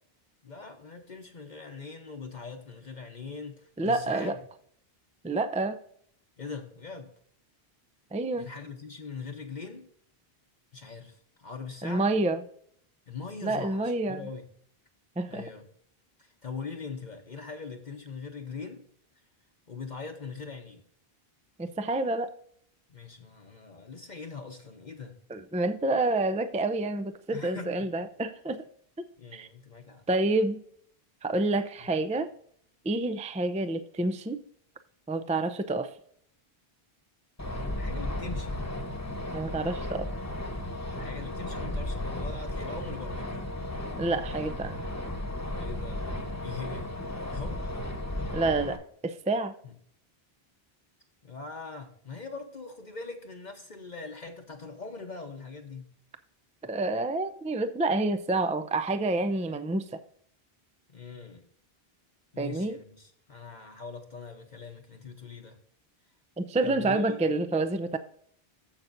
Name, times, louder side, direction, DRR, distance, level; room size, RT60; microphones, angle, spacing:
voice 1, 0.4-4.4 6.4-7.1 8.3-9.9 10.7-12.0 13.1-14.5 15.3-15.7 16.2-18.8 19.7-20.8 22.9-25.2 27.3-27.9 29.2-30.0 31.8-31.9 37.7-38.6 41.0-43.5 45.6-46.1 46.4-46.9 47.2-47.6 49.6-49.7 51.2-55.9 60.9-61.5 62.3-65.6 66.6-67.2, left 4 dB, 50° left, 4 dB, 1.0 m, -42 dB
voice 2, 3.8-4.4 5.2-5.8 8.1-8.5 11.8-12.4 13.4-14.3 15.2-15.4 21.6-22.3 25.3-28.6 29.3-29.5 30.1-30.6 31.2-32.3 32.8-34.4 35.1-35.9 39.3-40.1 44.0-44.8 48.3-49.5 56.6-59.9 62.4-62.8 66.4-68.0, right 2 dB, 10° right, 10 dB, 0.4 m, -28 dB
sound 1, 37.4-48.8, left 1 dB, 15° left, 1.2 m, -34 dB
14.5 x 5.8 x 2.6 m, 0.63 s
omnidirectional pair, 1.0 m